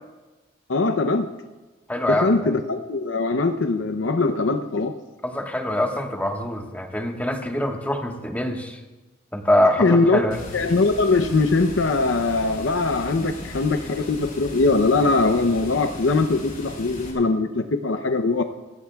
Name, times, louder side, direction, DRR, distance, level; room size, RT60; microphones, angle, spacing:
voice 1, 0.7-1.3 2.1-4.9 9.8-10.2 10.5-18.4, left 3 dB, 85° left, 7 dB, 0.7 m, -21 dB
voice 2, 1.9-2.5 5.2-8.8 9.3-10.4, left 1 dB, 10° left, 2 dB, 1.4 m, -24 dB
Water, 10.3-17.1, left 1 dB, 50° left, 5.0 m, -37 dB
28.0 x 16.5 x 2.4 m, 1.2 s
head